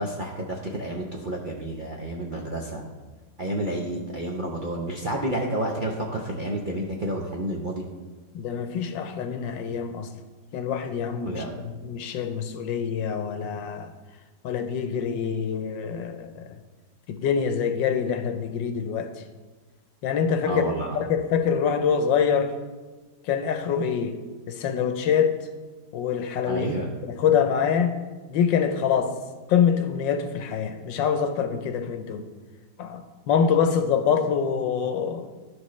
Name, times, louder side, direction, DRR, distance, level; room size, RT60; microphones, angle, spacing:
voice 1, 0.0-2.8 3.4-7.8 11.2-11.5 20.4-21.0 26.4-26.9, right 1 dB, 55° right, -1 dB, 0.5 m, -30 dB
voice 2, 8.3-10.1 10.5-13.9 14.4-16.5 17.1-19.1 20.0-22.5 23.3-24.1 24.5-25.4 25.9-26.7 27.0-27.9 28.3-29.1 29.5-32.3 32.8-35.3, left 7 dB, 90° left, 8 dB, 1.4 m, -25 dB
12.0 x 6.2 x 3.2 m, 1.3 s
omnidirectional pair, 2.0 m